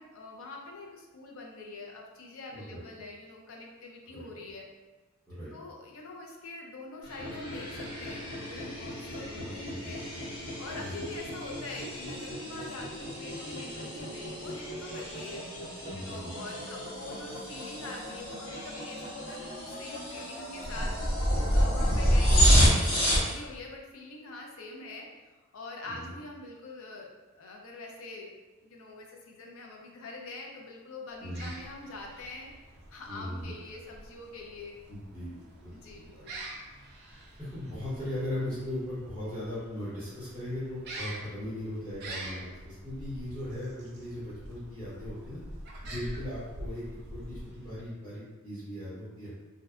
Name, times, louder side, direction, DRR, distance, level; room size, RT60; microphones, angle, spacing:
voice 1, 0.0-4.7 5.5-10.0 10.6-15.7 15.9-25.1 25.5-27.1 27.4-28.3 28.6-34.7 35.7-36.3, left 2 dB, 60° left, 0 dB, 0.4 m, -44 dB
voice 2, 2.5-2.8 4.1-4.3 5.3-5.5 9.3-9.9 10.7-11.0 15.9-16.3 21.8-22.1 25.8-26.1 31.2-31.5 33.1-33.5 34.9-35.3 35.6-35.7 36.1-36.2 37.4-45.4 45.8-49.3, left 1 dB, 10° left, -13 dB, 0.7 m, -38 dB
sound 1, 7.0-23.3, equal, 90° left, 1.0 m, -29 dB
sound 2, 31.1-47.9, right 1 dB, 45° right, 0.4 m, -46 dB
2.6 x 2.1 x 2.3 m, 1.2 s
head